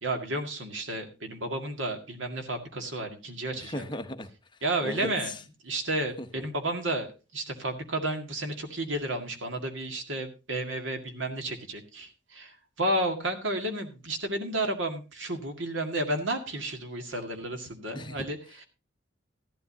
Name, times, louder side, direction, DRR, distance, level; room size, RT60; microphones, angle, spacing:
voice 1, 0.0-3.8 4.6-5.3 5.6-7.1 7.3-18.6, right 1 dB, 85° right, 5 dB, 2.1 m, -32 dB
voice 2, 3.5-4.3 4.8-5.4 6.2-6.3 17.9-18.3, left 1 dB, 25° left, 7 dB, 0.9 m, -36 dB
14.5 x 11.5 x 2.8 m, 0.30 s
head